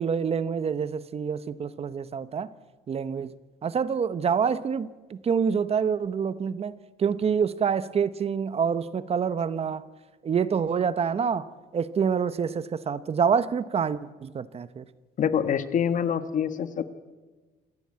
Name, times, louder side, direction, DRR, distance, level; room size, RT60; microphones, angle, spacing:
voice 1, 0.0-2.5 2.9-3.3 3.6-9.9 10.2-14.8, right 6 dB, 35° right, 0.9 m, -27 dB
voice 2, 15.2-16.9, left 8 dB, 50° left, 1.4 m, -26 dB
27.0 x 15.5 x 8.6 m
cardioid pair, 110°, 17 cm